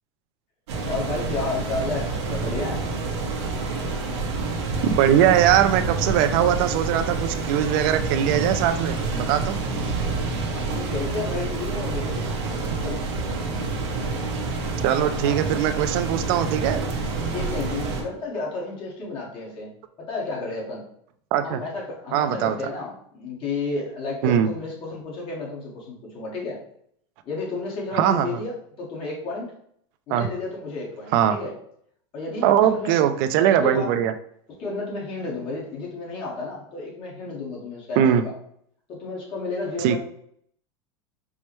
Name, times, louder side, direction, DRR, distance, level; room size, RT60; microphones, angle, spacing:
sound 1, 0.7-18.0, right 3 dB, 80° right, 0.8 m, -28 dB
voice 1, 0.9-2.8 10.5-12.3 12.6-13.0 15.2-15.4 17.3-19.7 20.0-20.8 21.4-26.6 27.2-29.5 30.1-31.5 32.1-33.0 33.6-33.9 34.6-38.3 38.9-40.0, left 3 dB, 40° left, -3 dB, 1.3 m, -32 dB
voice 2, 4.8-9.6 14.8-16.8 21.3-21.6 22.1-22.6 24.2-24.5 27.9-28.3 30.1-30.3 31.1-31.4 32.4-34.1 38.0-38.2 39.8-40.0, right 10 dB, 55° right, 9 dB, 0.4 m, -21 dB
4.6 x 2.1 x 3.0 m, 0.67 s
supercardioid pair, 135°, 14 cm